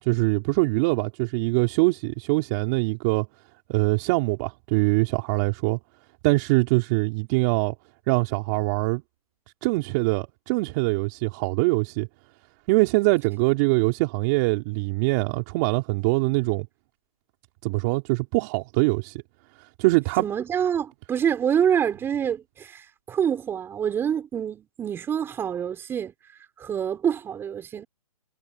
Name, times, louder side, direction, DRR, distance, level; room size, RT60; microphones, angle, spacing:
voice 1, 0.0-3.3 3.7-5.8 6.2-7.7 8.1-9.0 9.6-12.1 12.7-16.7 17.6-19.2 19.6-20.3, right 25 dB, 30° right, 3.3 m, -23 dB
voice 2, 20.2-26.1 26.6-27.8, right 8 dB, 10° right, 6.3 m, -26 dB
hypercardioid pair, 150°, 19 cm